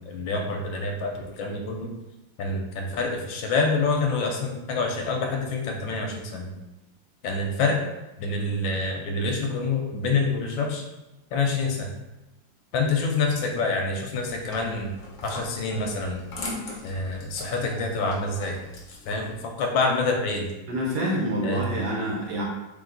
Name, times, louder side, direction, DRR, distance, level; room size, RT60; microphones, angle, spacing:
voice 1, 0.0-1.9 2.4-6.5 7.2-7.8 8.2-10.8 11.3-11.9 12.7-14.9 15.2-16.2 16.8-18.6 19.1-20.5 21.4-21.7, left 3 dB, 75° left, 2 dB, 1.3 m, -27 dB
sound 1, 14.2-19.3, left 2 dB, 60° left, 0.8 m, -40 dB
voice 2, 20.7-22.4, equal, 65° right, -3 dB, 1.2 m, -27 dB
3.5 x 2.9 x 3.8 m, 1.0 s
omnidirectional pair, 2.2 m